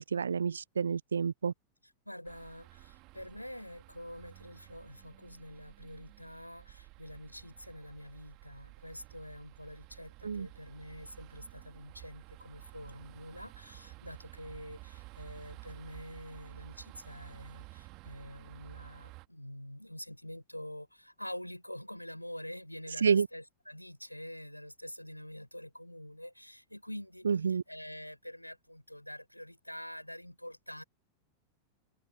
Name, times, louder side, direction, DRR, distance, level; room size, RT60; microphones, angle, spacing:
voice 1, 0.0-1.5 10.2-10.5 23.0-23.3 27.3-27.6, right 6 dB, 70° right, 0.6 m, -29 dB
voice 2, 2.1-30.8, left 1 dB, 90° left, 5.7 m, -46 dB
sound 1, 2.3-19.3, right 24 dB, 40° right, 3.1 m, -53 dB
figure-of-eight pair, 90°, 0 cm